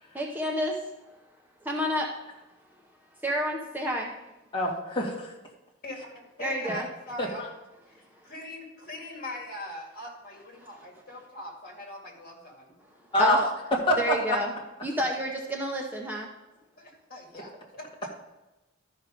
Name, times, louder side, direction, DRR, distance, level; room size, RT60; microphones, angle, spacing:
voice 1, 0.1-0.7 1.7-2.1 3.2-4.1 6.4-6.9 13.2-13.5 14.0-14.5 14.8-16.3, equal, 10° right, 0 dB, 0.8 m, -29 dB
voice 2, 4.5-5.3 7.2-7.5 13.1-13.4 13.9-14.4, left 1 dB, 25° left, -2 dB, 1.8 m, -25 dB
voice 3, 6.4-7.5 8.2-12.7 17.1-17.5 17.8-17.9, left 1 dB, 50° left, 0 dB, 2.2 m, -41 dB
13.0 x 5.2 x 5.0 m, 1.0 s
head